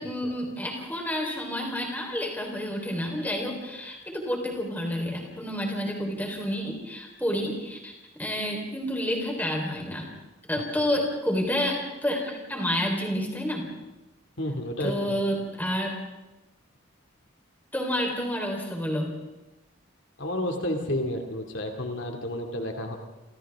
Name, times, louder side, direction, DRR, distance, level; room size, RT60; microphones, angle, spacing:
voice 1, 0.0-7.9 8.2-10.1 10.5-13.7 14.8-15.9 17.7-19.2, equal, 10° left, 0 dB, 4.2 m, -29 dB
voice 2, 10.5-10.9 14.4-15.2 20.2-23.0, left 1 dB, 65° left, 3 dB, 2.5 m, -31 dB
28.5 x 27.0 x 3.7 m, 1.0 s
head